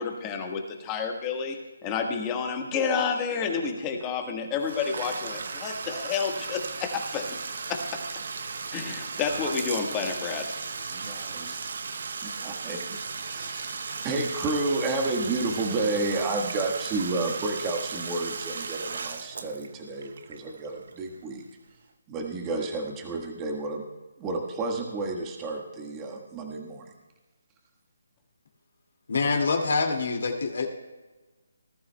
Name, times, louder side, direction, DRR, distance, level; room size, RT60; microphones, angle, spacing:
voice 1, 0.0-7.4 7.7-7.8 8.7-10.5, left 5 dB, 15° left, 3 dB, 1.4 m, -30 dB
Bathtub (filling or washing), 4.6-21.3, right 5 dB, 55° right, 0.8 m, -36 dB
voice 2, 10.9-11.7 12.2-13.8 14.0-21.4 22.1-23.9 24.2-26.9, right 2 dB, 15° right, 1 dB, 1.4 m, -31 dB
voice 3, 29.1-30.7, left 4 dB, 65° left, 3 dB, 2.2 m, -25 dB
19.0 x 12.5 x 2.3 m, 1.2 s
hypercardioid pair, 165°, 0 cm